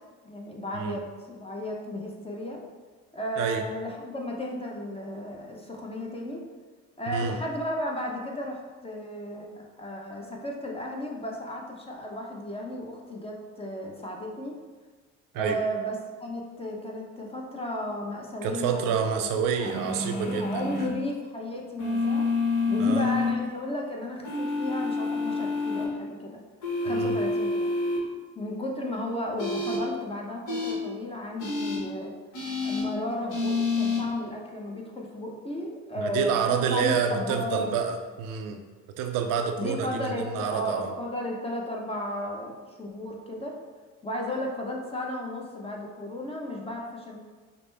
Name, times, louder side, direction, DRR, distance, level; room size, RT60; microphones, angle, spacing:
voice 1, 0.2-2.6 3.1-6.4 7.0-14.6 15.4-22.3 22.7-26.4 26.8-27.7 28.4-32.1 32.6-37.7 39.6-42.5 42.8-43.5 44.0-47.2, left 1 dB, 15° left, -1 dB, 0.8 m, -34 dB
voice 2, 7.1-7.4 15.3-15.6 18.4-20.9 22.8-23.1 26.9-27.2 36.0-38.6 39.0-40.9, right 7 dB, 70° right, 5 dB, 0.5 m, -28 dB
sound 1, 19.6-20.9 21.8-23.3 24.2-25.8 26.6-28.0 29.4-29.8 30.5-30.7 31.4-31.8 32.3-32.8 33.3-34.0, left 3 dB, 65° left, 1.2 m, -28 dB
5.0 x 2.2 x 3.3 m, 1.4 s
supercardioid pair, 75°, 33 cm